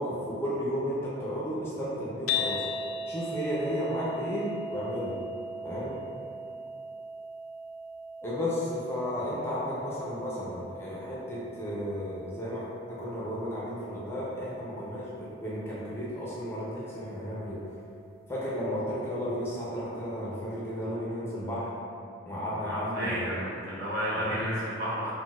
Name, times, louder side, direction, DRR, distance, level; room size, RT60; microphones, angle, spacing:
voice 1, 0.0-2.6 3.1-5.1 5.6-6.0 8.2-17.6 18.3-21.7 22.3-23.3 24.1-24.5, equal, 10° left, -8 dB, 0.4 m, -33 dB
sound 1, 2.3-18.5, left 2 dB, 90° left, 0.3 m, -40 dB
voice 2, 22.7-25.1, equal, 50° right, -8 dB, 0.8 m, -32 dB
4.0 x 2.1 x 2.3 m, 2.6 s
head